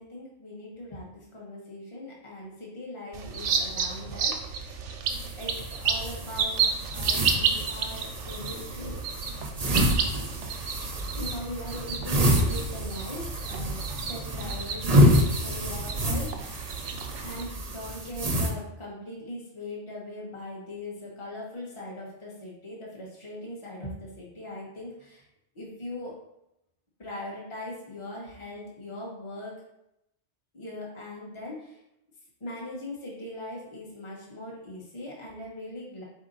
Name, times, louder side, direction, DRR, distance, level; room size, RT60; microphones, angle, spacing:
voice 1, 0.0-4.8 5.4-9.0 10.9-16.7 17.2-25.2 25.5-26.2 27.0-29.6 30.5-31.8 32.4-36.0, left 1 dB, 25° left, -4 dB, 1.0 m, -40 dB
sound 1, 3.1-17.4, right 6 dB, 90° right, 0.9 m, -32 dB
sound 2, 5.1-18.5, equal, 40° right, 0.6 m, -28 dB
4.2 x 2.8 x 3.8 m, 0.83 s
omnidirectional pair, 1.2 m